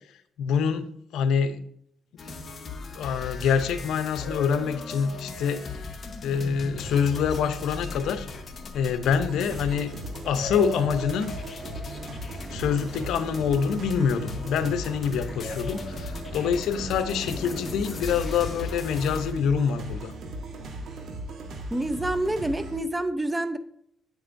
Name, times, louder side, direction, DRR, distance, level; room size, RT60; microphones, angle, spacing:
voice 1, 0.4-1.6 2.9-5.7 6.2-8.3 8.7-9.9 10.3-11.3 12.5-20.1, left 7 dB, 80° left, 10 dB, 0.7 m, -26 dB
sound 1, 2.2-19.3, left 4 dB, 40° left, 1.1 m, -39 dB
sound 2, 4.2-7.2 10.3-13.6 15.3-18.1, left 2 dB, 20° left, 1.9 m, -42 dB
sound 3, 9.1-22.8, right 1 dB, 65° right, 1.6 m, -38 dB
voice 2, 21.7-23.6, right 1 dB, 15° right, 11 dB, 0.7 m, -27 dB
8.8 x 7.8 x 2.6 m, 0.69 s
cardioid pair, 90°, 0 cm